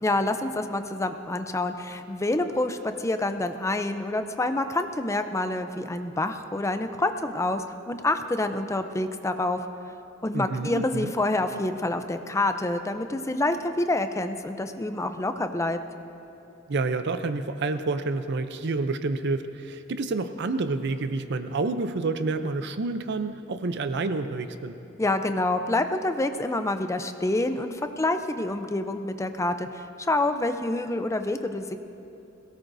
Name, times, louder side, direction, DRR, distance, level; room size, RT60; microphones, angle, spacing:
voice 1, 0.0-9.6 10.2-15.8 25.0-31.8, left 2 dB, 15° left, 8 dB, 0.5 m, -27 dB
voice 2, 10.3-11.1 16.7-24.7, right 3 dB, 60° right, 10 dB, 0.6 m, -29 dB
22.0 x 17.5 x 2.7 m, 2.9 s
head